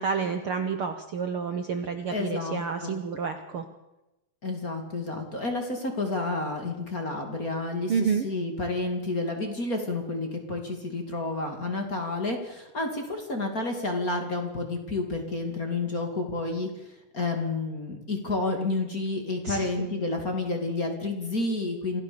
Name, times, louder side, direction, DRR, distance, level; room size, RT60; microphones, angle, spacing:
voice 1, 0.0-3.6 7.9-8.2 19.4-19.8, right 6 dB, 65° right, 7 dB, 1.4 m, -29 dB
voice 2, 2.1-3.0 4.4-7.9 8.2-16.7 17.1-22.0, left 2 dB, 25° left, 3 dB, 2.5 m, -30 dB
26.5 x 16.0 x 7.0 m, 0.97 s
omnidirectional pair, 4.0 m